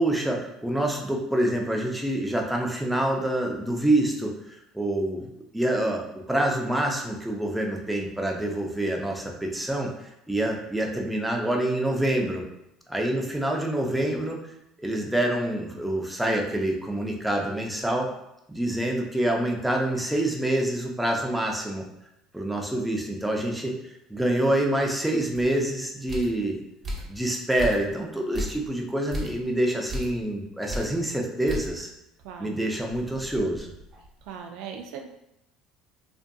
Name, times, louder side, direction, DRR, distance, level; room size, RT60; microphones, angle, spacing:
voice 1, 0.0-5.3 5.5-9.9 10.3-12.4 12.9-14.4 14.8-18.1 18.5-21.9 22.3-23.8 24.1-26.6 27.1-31.9 32.4-33.7, right 1 dB, 5° right, 0 dB, 0.5 m, -26 dB
sound 1, 25.3-25.5 26.1-26.4 26.8-27.2 27.6-28.0 28.3-28.7 29.1-29.4 29.9-30.2 30.7-31.0 31.5-31.8 32.2-32.3 32.8-34.3, equal, 30° right, 0.8 m, -35 dB
voice 2, 32.2-32.7 34.2-35.1, right 7 dB, 75° right, 4 dB, 0.3 m, -39 dB
2.5 x 2.5 x 2.2 m, 0.83 s
supercardioid pair, 90°, 0 cm